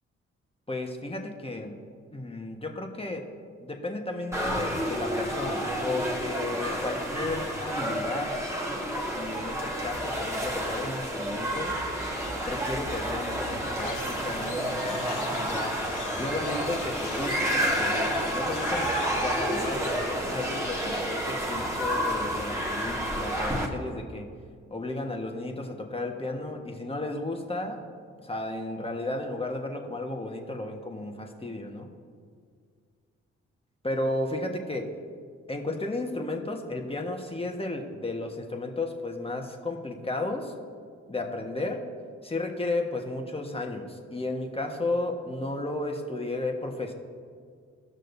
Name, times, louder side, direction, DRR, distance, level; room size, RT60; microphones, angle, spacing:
voice 1, 0.7-1.8 2.1-3.3 3.6-8.4 9.1-11.8 12.4-15.8 16.2-24.3 24.7-27.8 28.2-31.9 33.8-34.9 35.5-40.5 41.1-41.9 42.2-46.9, left 2 dB, 20° left, 2 dB, 1.4 m, -33 dB
sound 1, 4.3-23.7, equal, 10° right, 1.7 m, -30 dB
sound 2, 13.8-19.6, left 7 dB, 75° left, 0.7 m, -43 dB
17.0 x 6.3 x 2.7 m, 2.1 s
supercardioid pair, 40°, 31 cm